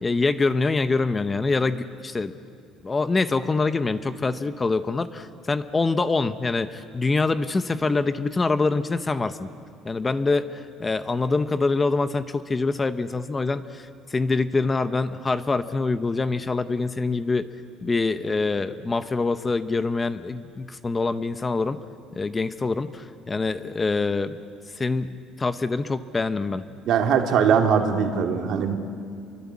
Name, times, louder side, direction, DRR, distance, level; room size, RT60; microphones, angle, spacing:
voice 1, 0.0-2.3 2.8-9.5 9.8-17.4 17.8-21.8 22.2-24.4 24.8-26.6, left 3 dB, 20° left, 12 dB, 0.8 m, -25 dB
voice 2, 26.9-28.8, right 7 dB, 60° right, 4 dB, 2.3 m, -21 dB
28.0 x 23.5 x 8.6 m, 2.4 s
cardioid pair, 125°, 0 cm